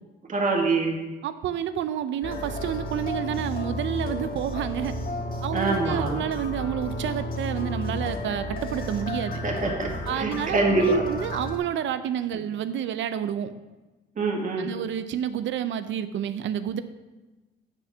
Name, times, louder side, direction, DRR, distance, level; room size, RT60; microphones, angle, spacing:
voice 1, 0.3-1.0 5.5-6.2 9.4-11.1 14.2-14.7, right 3 dB, 40° right, 0 dB, 1.8 m, -25 dB
voice 2, 1.2-4.9 5.4-9.3 10.1-10.6 11.1-13.5 14.6-16.8, right 10 dB, 70° right, 11 dB, 0.6 m, -29 dB
sound 1, 2.2-11.6, left 1 dB, 45° left, 1.3 m, -32 dB
8.7 x 4.5 x 6.1 m, 1.2 s
cardioid pair, 90°, 20 cm